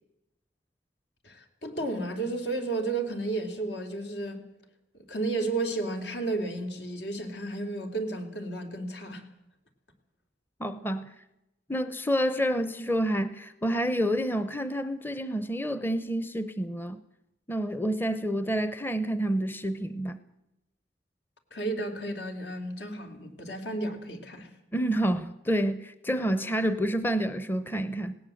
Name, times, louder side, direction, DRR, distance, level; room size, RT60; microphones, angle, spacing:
voice 1, 1.2-4.4 5.1-9.2 21.5-24.5, right 2 dB, 80° left, 3.1 m, -32 dB
voice 2, 10.6-11.1 11.7-17.0 17.5-20.2 24.7-28.2, equal, 10° left, 0.6 m, -28 dB
19.5 x 17.5 x 7.7 m
head